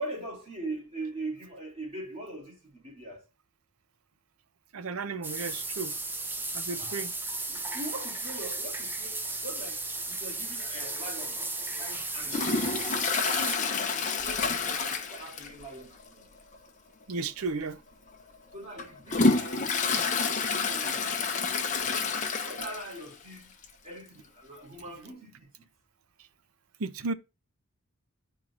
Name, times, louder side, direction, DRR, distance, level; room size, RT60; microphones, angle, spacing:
voice 1, 0.0-3.2 6.8-7.0 7.5-11.4 11.7-12.6 13.3-16.3 18.5-21.8 22.4-23.5 23.8-25.7, right 2 dB, 30° right, 3.1 m, -42 dB
voice 2, 4.7-5.9 6.5-7.1 17.1-17.8 26.8-27.1, right 4 dB, 85° right, 0.6 m, -34 dB
sound 1, 5.2-13.6, right 2 dB, 10° right, 0.7 m, -35 dB
Toilet flush, 12.3-15.7 16.0-16.1 16.5-16.6 17.5-17.6 18.1-23.0 23.4-23.5 23.6-23.7 24.8-24.9, left 4 dB, 35° left, 1.0 m, -28 dB
11.0 x 4.5 x 2.4 m
head